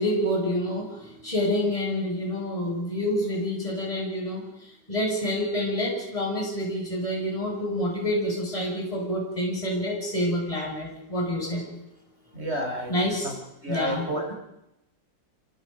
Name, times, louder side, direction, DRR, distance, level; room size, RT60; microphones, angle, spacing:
voice 1, 0.0-11.7 12.9-13.3 13.7-14.3, equal, 15° left, -2 dB, 6.3 m, -28 dB
voice 2, 12.3-12.9 13.2-13.3 13.6-14.3, right 1 dB, 30° right, 2 dB, 5.1 m, -30 dB
26.5 x 22.5 x 5.2 m, 0.87 s
omnidirectional pair, 2.3 m